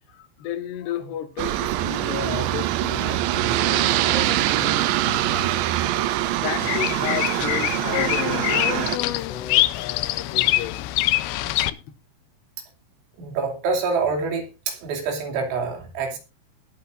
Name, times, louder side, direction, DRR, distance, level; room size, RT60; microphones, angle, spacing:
voice 1, 0.1-5.8 6.4-10.9 11.7-11.9, left 10 dB, 65° left, 3.1 m, -34 dB
Aircraft, 1.4-9.0, right 14 dB, 80° right, 2.7 m, -23 dB
Bird vocalization bird call bird song, 6.6-11.7, left 16 dB, 85° left, 2.5 m, -24 dB
voice 2, 13.2-16.2, right 4 dB, 65° right, 5.0 m, -26 dB
20.0 x 9.2 x 2.6 m
omnidirectional pair, 5.9 m